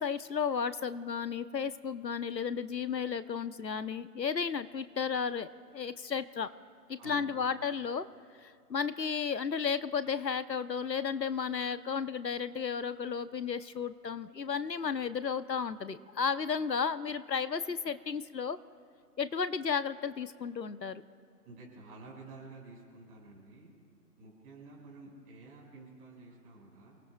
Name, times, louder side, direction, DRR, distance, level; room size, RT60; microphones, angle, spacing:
voice 1, 0.0-5.5 5.7-6.5 6.9-8.1 8.4-18.6 19.2-21.0, left 6 dB, 85° left, 13 dB, 0.9 m, -33 dB
voice 2, 7.0-7.4 21.4-23.7 24.2-26.9, right 3 dB, 15° right, -4 dB, 5.5 m, -51 dB
30.0 x 19.5 x 2.3 m, 2.2 s
figure-of-eight pair, 150°, 49 cm